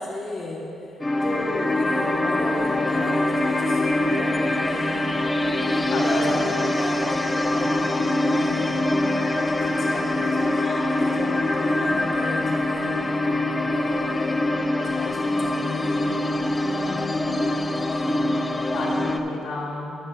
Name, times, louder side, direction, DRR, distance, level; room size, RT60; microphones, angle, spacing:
voice 1, 0.0-5.0 5.6-8.9 9.6-13.0 13.7-14.2 14.8-16.9 17.9-18.4 18.8-18.9, left 1 dB, 35° left, -4 dB, 1.3 m, -34 dB
sound 1, 1.0-19.2, left 2 dB, 15° left, 0.5 m, -24 dB
voice 2, 5.9-6.4 16.8-17.3 18.7-20.0, left 2 dB, 75° left, -4 dB, 2.2 m, -31 dB
20.0 x 7.3 x 2.4 m, 2.9 s
cardioid pair, 90°, 0 cm